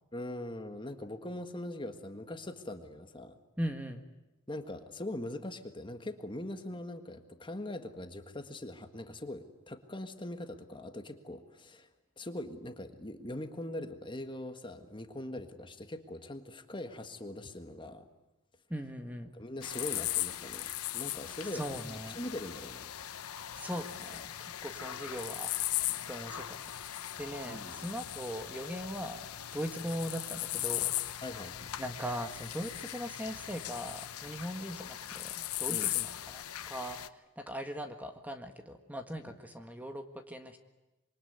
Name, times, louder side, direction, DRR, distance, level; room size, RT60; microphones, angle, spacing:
voice 1, 0.1-3.4 4.5-11.9 12.2-18.1 19.3-22.9 27.5-27.9 31.2-31.7 35.7-35.9 39.3-39.4, left 1 dB, 20° left, 7 dB, 1.7 m, -42 dB
voice 2, 3.6-4.0 18.7-19.3 21.5-22.2 23.6-25.5 26.1-26.6 27.2-29.2 29.5-30.9 31.8-37.0 37.4-40.6, equal, 5° right, 6 dB, 1.6 m, -39 dB
sound 1, 19.6-37.1, left 13 dB, 80° left, 0.9 m, -38 dB
26.5 x 23.5 x 9.5 m, 1.0 s
head